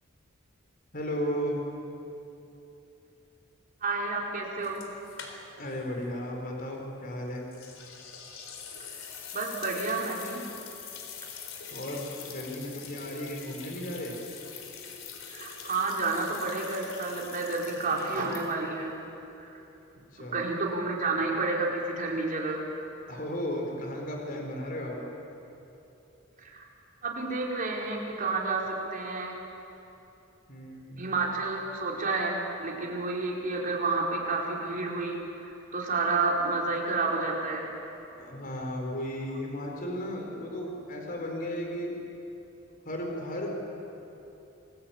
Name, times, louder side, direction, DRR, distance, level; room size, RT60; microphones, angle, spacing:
voice 1, 0.9-1.6 5.6-7.5 11.7-14.2 20.1-20.4 23.1-25.0 30.5-31.1 38.1-41.9 42.8-43.5, equal, 45° left, 0 dB, 4.8 m, -35 dB
voice 2, 3.8-4.8 9.3-10.4 15.3-18.9 19.4-19.5 20.3-22.6 26.4-26.6 27.0-29.4 31.0-35.2 35.4-37.7, right 3 dB, 40° right, -2 dB, 4.7 m, -30 dB
sound 1, 4.6-5.8 6.0-6.1 7.5-18.8, left 7 dB, 70° left, 3.9 m, -44 dB
28.0 x 21.0 x 9.0 m, 2.9 s
head